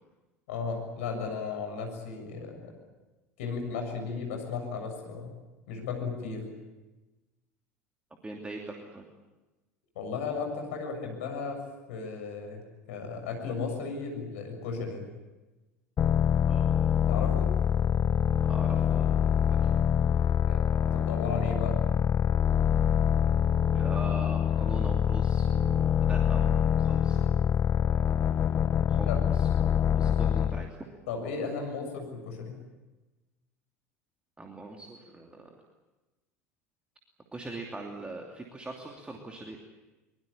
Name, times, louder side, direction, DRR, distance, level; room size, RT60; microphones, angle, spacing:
voice 1, 0.5-2.7 3.4-5.3 5.7-6.4 10.0-11.6 11.9-12.6 12.9-15.1 17.1-17.5 20.5-20.6 20.9-21.8 29.1-29.2 31.1-32.6, left 5 dB, 60° left, 3 dB, 7.0 m, -35 dB
voice 2, 8.2-9.0 16.5-16.7 18.5-19.1 19.5-19.7 23.7-27.6 28.9-29.5 30.0-30.8 34.4-35.6 37.3-39.6, right 2 dB, 15° right, 1 dB, 2.8 m, -42 dB
sound 1, 16.0-30.7, left 8 dB, 30° left, 0.8 m, -25 dB
24.0 x 22.0 x 8.7 m, 1.1 s
figure-of-eight pair, 75°, 8 cm